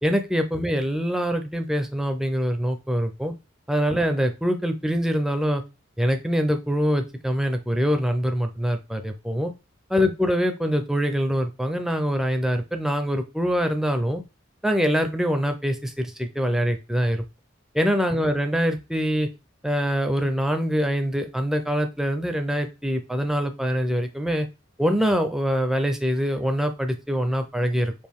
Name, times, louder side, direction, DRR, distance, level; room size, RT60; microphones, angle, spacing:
voice 1, 0.0-3.3 3.7-5.6 6.0-9.5 9.9-14.2 14.6-17.2 17.7-19.3 19.6-24.5 24.8-27.9, equal, ahead, 6 dB, 0.5 m, -24 dB
4.4 x 2.6 x 3.5 m, 0.27 s
head